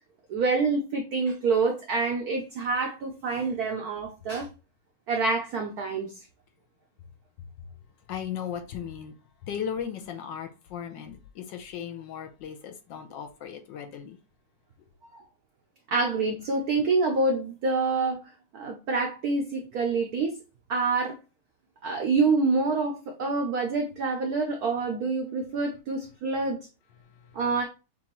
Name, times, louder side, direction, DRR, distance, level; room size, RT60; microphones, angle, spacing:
voice 1, 0.3-4.5 5.1-6.2 15.1-15.2 15.9-20.3 20.7-21.2 21.8-26.6 27.3-27.6, right 4 dB, 90° right, 0.8 m, -27 dB
voice 2, 8.1-9.1 9.4-14.2 27.0-27.4, left 8 dB, 70° left, 1.2 m, -37 dB
6.9 x 2.5 x 3.0 m
omnidirectional pair, 2.4 m